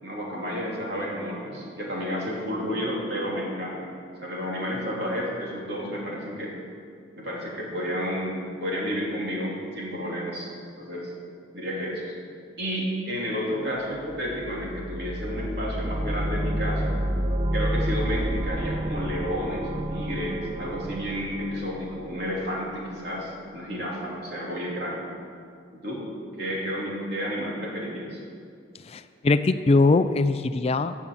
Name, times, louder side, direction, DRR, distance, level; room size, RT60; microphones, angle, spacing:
voice 1, 0.0-3.9 4.2-6.5 7.1-10.5 10.8-11.1 11.5-12.1 12.6-16.9 17.5-25.1 25.8-26.0 26.4-28.2, equal, 60° right, -4 dB, 3.5 m, -31 dB
sound 1, 13.9-22.8, equal, 25° right, 0.6 m, -30 dB
voice 2, 28.9-30.9, left 3 dB, 35° left, 11 dB, 0.4 m, -21 dB
16.0 x 7.3 x 7.0 m, 2.2 s
head